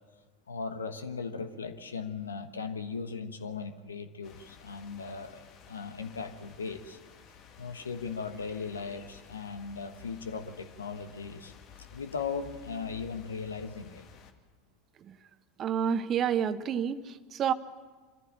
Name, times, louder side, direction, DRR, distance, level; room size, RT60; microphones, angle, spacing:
voice 1, 0.5-7.0 7.6-11.5 11.9-14.0, left 5 dB, 75° left, 10 dB, 1.2 m, -38 dB
sound 1, 4.2-14.3, left 7 dB, 45° left, 1.8 m, -53 dB
voice 2, 15.6-17.5, right 8 dB, 35° right, 13 dB, 0.9 m, -29 dB
25.0 x 14.5 x 8.7 m, 1.4 s
figure-of-eight pair, 75°, 0 cm